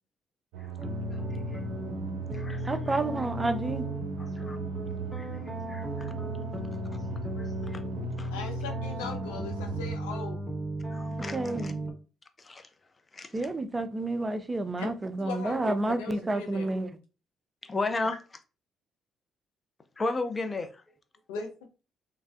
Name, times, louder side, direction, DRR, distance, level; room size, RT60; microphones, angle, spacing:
sound 1, 0.5-10.0, right 10 dB, 85° right, 0.3 m, -38 dB
sound 2, 0.8-11.9, left 1 dB, 5° right, 1.2 m, -36 dB
voice 1, 1.1-1.6 2.3-3.0 4.2-4.6 5.2-6.1 7.1-7.9 8.2-8.3 10.9-11.7 12.4-12.7 13.1-13.4 17.6-18.2 20.0-20.8, left 3 dB, 30° left, 0.6 m, -35 dB
voice 2, 2.6-3.9 11.3-11.8 13.3-16.9, right 2 dB, 25° right, 0.5 m, -30 dB
voice 3, 8.3-10.4 14.8-14.9 15.2-16.7 21.3-21.5, left 4 dB, 90° left, 0.6 m, -39 dB
3.2 x 2.6 x 2.4 m
hypercardioid pair, 55°, 0 cm